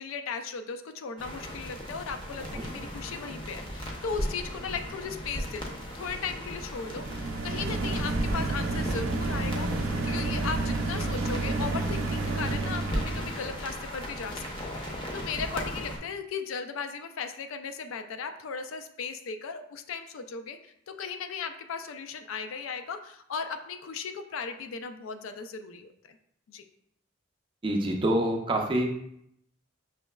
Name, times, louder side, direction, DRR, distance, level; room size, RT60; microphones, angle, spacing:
voice 1, 0.0-26.2 26.5-26.6, left 5 dB, 75° left, 8 dB, 0.4 m, -37 dB
sound 1, 1.2-16.0, equal, 25° left, 0.6 m, -37 dB
sound 2, 6.8-13.4, right 2 dB, 80° right, 0.4 m, -30 dB
voice 2, 27.6-28.9, right 1 dB, 25° right, 1 dB, 0.5 m, -26 dB
5.5 x 3.0 x 2.2 m, 0.74 s
head